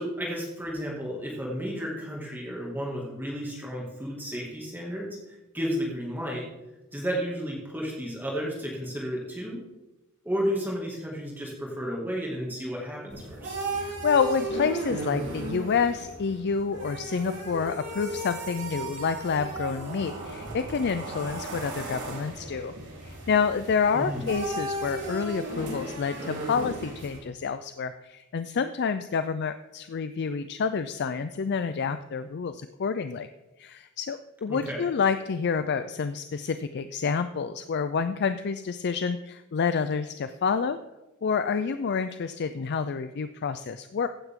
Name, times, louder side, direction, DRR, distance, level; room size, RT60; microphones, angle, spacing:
voice 1, 0.0-6.5 6.9-9.6 10.2-13.5 23.9-24.3 34.5-34.9, equal, 10° right, -3 dB, 2.3 m, -32 dB
sound 1, 13.1-27.2, right 1 dB, 55° right, 3.7 m, -35 dB
voice 2, 13.7-22.7 23.0-33.3 33.6-40.8 41.2-44.1, left 5 dB, 50° left, 11 dB, 0.4 m, -28 dB
15.0 x 9.3 x 3.7 m, 1.1 s
head